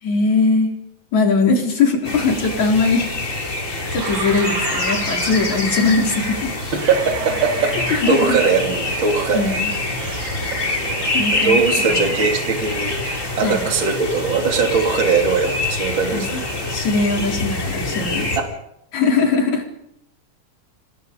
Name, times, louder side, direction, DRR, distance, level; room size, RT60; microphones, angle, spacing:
voice 1, 0.0-0.7 1.1-3.6 3.9-6.6 7.9-8.4 9.3-9.7 11.1-11.6 11.9-12.1 13.4-13.7 16.1-16.4 16.7-18.3 18.9-19.6, left 4 dB, 65° left, 1 dB, 5.5 m, -20 dB
sound 1, 2.0-18.4, left 2 dB, 25° left, 3.8 m, -25 dB
sound 2, 3.3-3.4 3.9-16.8, right 7 dB, 65° right, 2.9 m, -35 dB
voice 2, 6.7-9.5 10.6-16.4 18.0-18.1 18.4-18.5, right 5 dB, 40° right, 3 dB, 3.6 m, -21 dB
26.5 x 19.0 x 5.4 m, 0.78 s
omnidirectional pair, 3.5 m